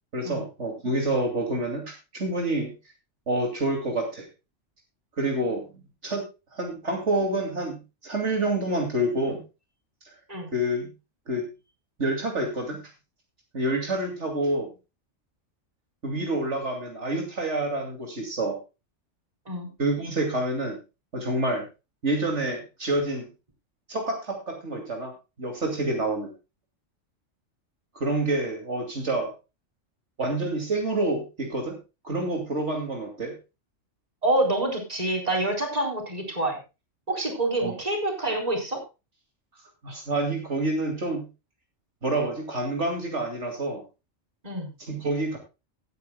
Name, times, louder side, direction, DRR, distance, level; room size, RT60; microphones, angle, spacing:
voice 1, 0.1-2.7 3.3-4.3 5.2-6.2 6.5-7.8 8.0-9.4 10.0-10.1 10.5-10.9 11.3-11.5 12.0-12.8 13.5-14.7 16.0-18.6 19.8-20.8 21.1-21.7 22.0-23.3 23.9-25.1 25.4-26.3 27.9-29.3 30.2-31.8 32.0-33.3 37.6-37.7 39.8-41.2 42.0-43.8 44.8-45.4, right 2 dB, 65° right, 2 dB, 2.9 m, -27 dB
voice 2, 34.2-36.6 37.1-38.8 44.4-44.7, right 1 dB, 30° right, 1 dB, 4.3 m, -27 dB
18.5 x 9.6 x 2.2 m, 0.28 s
omnidirectional pair, 1.3 m